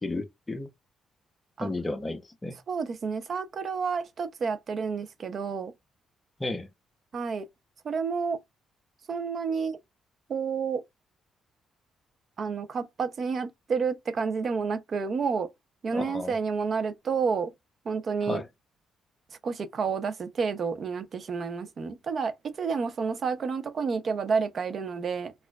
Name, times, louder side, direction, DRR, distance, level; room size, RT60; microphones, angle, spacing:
voice 1, 0.0-0.7 1.6-2.6 6.4-6.7 15.9-16.3 18.2-18.5, left 2 dB, 20° left, 0.7 m, -33 dB
voice 2, 2.7-5.7 7.1-7.5 7.8-8.4 9.1-9.8 10.3-10.8 12.4-15.5 15.8-17.5 17.8-18.4 19.4-25.3, right 5 dB, 50° right, 0.6 m, -30 dB
4.3 x 2.5 x 2.3 m
cardioid pair, 90°, 0 cm